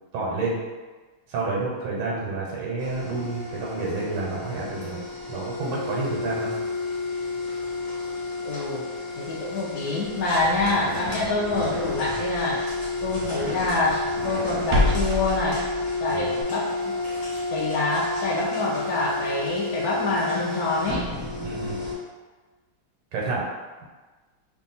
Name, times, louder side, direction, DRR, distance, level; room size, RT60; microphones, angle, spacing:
voice 1, 0.1-0.6 1.3-5.0 5.3-6.5 16.1-16.2 21.4-21.8 23.1-23.5, right 3 dB, 90° right, -4 dB, 1.5 m, -29 dB
sound 1, 2.8-21.9, left 3 dB, 40° left, 0.6 m, -31 dB
voice 2, 8.4-8.8 9.2-12.6 13.0-15.6 16.0-16.9 17.5-21.1, left 2 dB, 80° left, -4 dB, 0.8 m, -26 dB
sound 2, 10.1-16.4, left 1 dB, 65° right, 0.8 m, -30 dB
3.3 x 2.3 x 4.0 m, 1.3 s
omnidirectional pair, 2.2 m